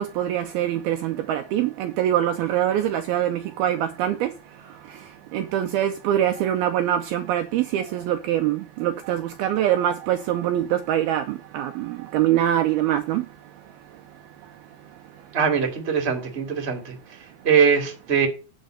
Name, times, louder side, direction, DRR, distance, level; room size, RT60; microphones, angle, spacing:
voice 1, 0.0-4.3 5.3-13.3, right 11 dB, 85° right, 2.2 m, -24 dB
voice 2, 15.3-16.9 17.4-18.3, right 6 dB, 20° right, 1.7 m, -21 dB
9.6 x 5.0 x 7.8 m
omnidirectional pair, 5.2 m